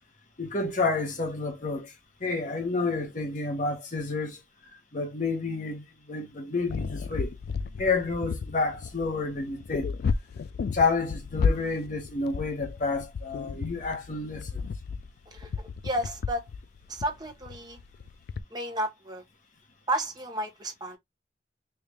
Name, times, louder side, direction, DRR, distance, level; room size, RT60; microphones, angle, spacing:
voice 1, 0.4-1.9 2.2-4.4 4.9-7.4 7.8-9.9 10.7-14.6, left 3 dB, 45° left, 1.1 m, -29 dB
sound 1, 6.7-18.4, left 5 dB, 60° left, 0.3 m, -33 dB
voice 2, 15.3-16.4 16.9-17.8 18.5-19.2 19.9-21.0, right 1 dB, 25° right, 0.9 m, -32 dB
3.4 x 2.7 x 3.3 m
head